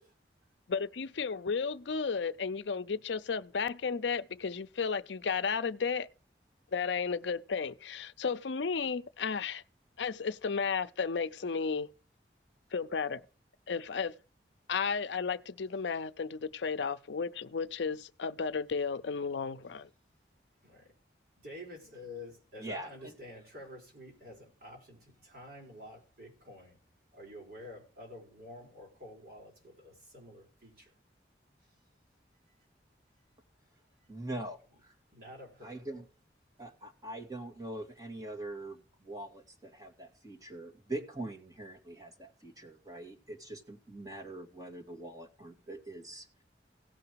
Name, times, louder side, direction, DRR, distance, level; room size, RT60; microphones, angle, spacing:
voice 1, 0.7-6.1 6.7-9.6 10.0-11.9 12.7-13.2 13.7-14.2 14.7-19.9, left 5 dB, 80° left, 0.5 m, -33 dB
voice 2, 20.6-20.9 21.4-26.8 27.1-30.9 31.6-31.7 34.4-34.5 35.1-35.8, left 1 dB, 55° right, 4.4 m, -49 dB
voice 3, 22.6-23.1 34.1-34.9 35.6-36.1 36.6-46.3, right 1 dB, 20° right, 2.2 m, -43 dB
17.0 x 5.9 x 4.6 m
head